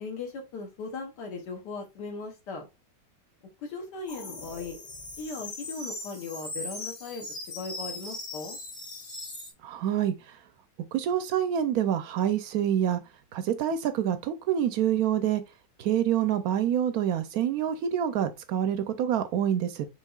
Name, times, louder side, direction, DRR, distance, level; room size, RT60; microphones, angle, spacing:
voice 1, 0.0-2.7 3.6-4.8 5.2-7.3 7.6-8.6, left 4 dB, 70° left, 1.5 m, -38 dB
sound 1, 4.1-9.5, left 2 dB, 30° left, 1.2 m, -39 dB
voice 2, 9.6-10.1 10.9-13.0 13.3-15.4 15.8-19.9, right 10 dB, 70° right, 0.9 m, -26 dB
6.5 x 3.2 x 2.3 m
omnidirectional pair, 2.0 m